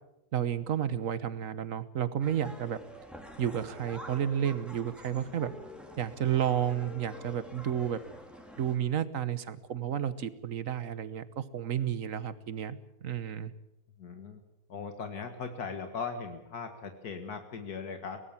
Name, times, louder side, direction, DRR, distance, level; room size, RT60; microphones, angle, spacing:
voice 1, 0.3-2.8 3.4-5.5 6.0-8.0 8.6-13.5, right 9 dB, 60° right, 15 dB, 1.4 m, -31 dB
sound 1, 2.2-8.8, equal, ahead, 3.0 m, -47 dB
voice 2, 14.0-14.4 14.7-18.2, left 5 dB, 85° left, 6 dB, 2.1 m, -39 dB
23.0 x 18.0 x 7.4 m, 0.87 s
omnidirectional pair, 1.6 m